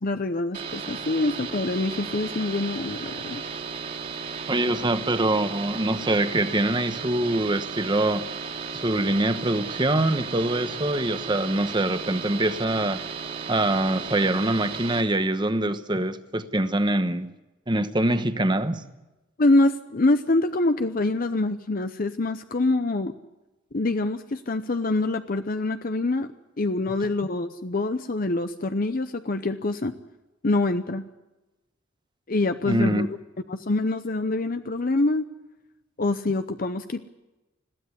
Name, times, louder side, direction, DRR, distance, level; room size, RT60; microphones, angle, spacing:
voice 1, 0.0-3.4 19.4-23.1 23.7-26.3 26.6-29.9 30.4-31.0 32.3-33.2 33.5-35.3 36.0-37.1, left 2 dB, 45° left, 0.7 m, -25 dB
sound 1, 0.5-15.0, right 5 dB, 40° right, 2.5 m, -35 dB
voice 2, 4.5-8.3 8.7-13.0 13.5-17.3 17.7-18.8 32.6-33.1, right 1 dB, 25° right, 1.1 m, -24 dB
21.0 x 15.5 x 9.6 m
head